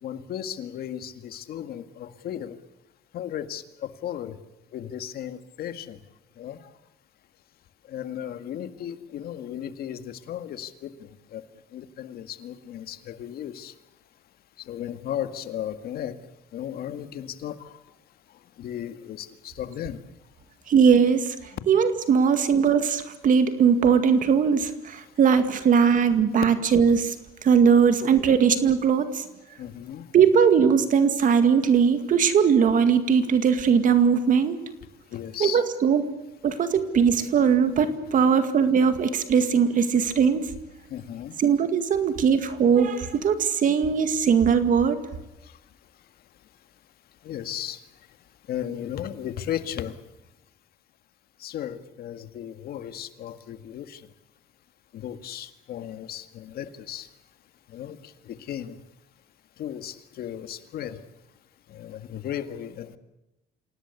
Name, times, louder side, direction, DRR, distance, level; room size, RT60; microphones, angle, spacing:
voice 1, 0.0-2.6 3.1-4.4 4.7-6.0 6.4-6.7 7.8-11.5 11.7-13.8 14.6-16.2 16.5-17.8 18.3-20.0 25.0-25.2 28.0-28.1 29.6-30.1 35.1-35.6 40.9-41.4 45.4-45.6 47.2-48.1 48.5-50.0 51.4-54.1 54.9-57.1 57.7-58.8 59.6-61.1 61.7-63.0, left 10 dB, 65° left, 10 dB, 1.8 m, -35 dB
voice 2, 20.7-21.4 21.7-27.1 27.4-29.2 30.1-34.6 35.4-36.1 36.4-40.5 41.4-45.0, right 6 dB, 50° right, 10 dB, 2.1 m, -20 dB
27.5 x 17.5 x 8.3 m, 0.95 s
cardioid pair, 110°, 17 cm